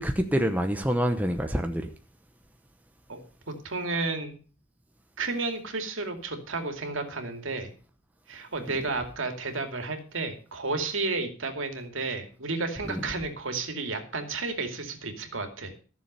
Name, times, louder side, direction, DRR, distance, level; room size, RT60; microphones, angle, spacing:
voice 1, 0.0-1.9 12.9-13.0, equal, 5° right, 0.8 m, -26 dB
voice 2, 3.5-4.4 5.2-7.7 8.3-15.7, right 3 dB, 60° right, 2.5 m, -32 dB
14.5 x 7.0 x 6.7 m
head